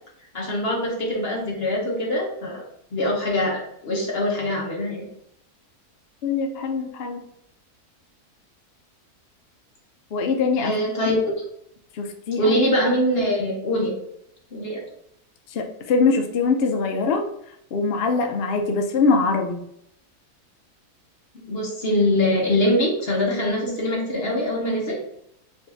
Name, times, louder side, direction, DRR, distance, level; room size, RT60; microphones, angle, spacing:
voice 1, 0.3-2.6 2.9-5.0 10.6-11.2 12.4-13.9 14.5-14.8 21.5-25.0, left 1 dB, 45° left, -3 dB, 1.0 m, -23 dB
voice 2, 6.2-7.2 10.1-10.7 11.9-12.5 15.5-17.2 17.7-19.6, left 4 dB, 70° left, 3 dB, 0.5 m, -22 dB
4.5 x 2.5 x 3.3 m, 0.74 s
omnidirectional pair, 1.6 m